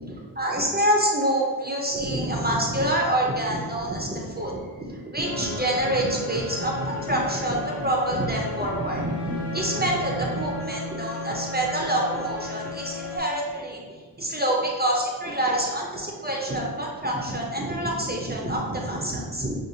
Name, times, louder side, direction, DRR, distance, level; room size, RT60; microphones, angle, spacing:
voice 1, 0.0-19.6, right 1 dB, 25° right, -2 dB, 0.5 m, -26 dB
sound 1, 5.2-13.2, left 2 dB, 75° left, 1.0 m, -35 dB
6.2 x 2.3 x 2.7 m, 1.4 s
wide cardioid pair, 105°, 42 cm